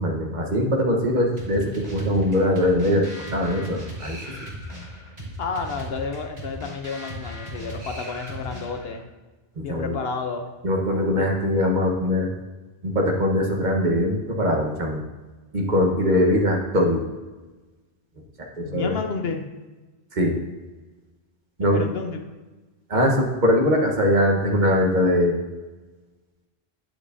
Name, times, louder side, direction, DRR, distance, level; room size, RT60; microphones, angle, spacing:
voice 1, 0.0-3.1 3.3-4.2 9.6-10.0 10.6-12.3 12.8-15.0 15.5-17.0 18.4-18.9 20.1-20.3 21.6-21.9 22.9-25.4, left 1 dB, 45° right, 1 dB, 1.3 m, -21 dB
sound 1, 1.4-9.0, equal, 80° right, 3.2 m, -37 dB
voice 2, 5.4-9.0 9.6-10.5 11.2-11.3 18.6-19.4 21.6-22.2, left 4 dB, 65° left, 5 dB, 1.0 m, -31 dB
9.2 x 7.7 x 2.7 m, 1.2 s
omnidirectional pair, 1.1 m